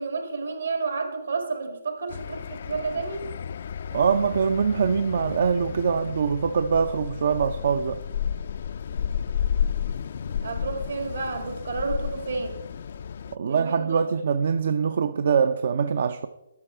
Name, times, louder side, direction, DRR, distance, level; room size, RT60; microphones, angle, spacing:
voice 1, 0.0-3.3 10.4-12.5 13.5-14.0, right 4 dB, 70° right, 2.1 m, -30 dB
sound 1, 2.1-13.4, left 8 dB, 55° left, 0.3 m, -32 dB
voice 2, 3.9-8.0 13.3-16.3, right 6 dB, 55° right, 0.5 m, -23 dB
12.5 x 5.9 x 4.5 m
figure-of-eight pair, 140°, 0 cm